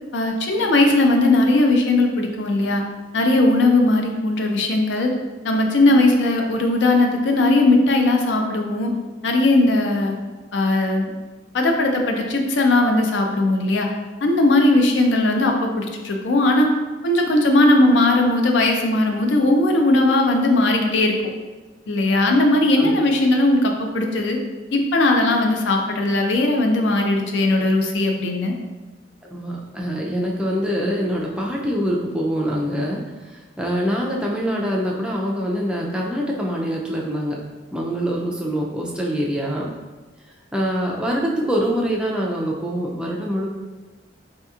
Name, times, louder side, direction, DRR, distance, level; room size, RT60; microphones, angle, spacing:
voice 1, 0.1-2.8 3.1-5.1 5.4-8.9 9.2-10.1 10.5-11.1 11.5-13.9 14.2-16.7 17.0-21.2 21.9-24.4 24.7-28.5, left 2 dB, 75° left, 3 dB, 0.5 m, -18 dB
voice 2, 29.2-37.4 37.7-39.7 40.5-43.5, equal, 5° right, -3 dB, 0.3 m, -24 dB
4.2 x 2.8 x 2.4 m, 1.2 s
head